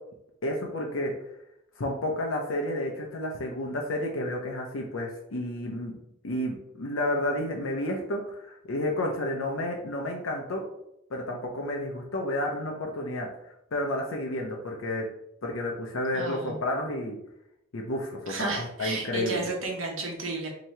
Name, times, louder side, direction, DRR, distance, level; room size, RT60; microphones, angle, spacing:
voice 1, 0.4-1.1 1.8-6.0 6.2-10.6 11.1-13.3 13.7-15.1 15.4-17.2 17.7-19.4, left 1 dB, 75° left, 0 dB, 0.6 m, -31 dB
voice 2, 16.1-16.6 18.3-20.5, right 3 dB, 75° right, 0 dB, 1.0 m, -32 dB
2.9 x 2.7 x 4.4 m, 0.79 s
head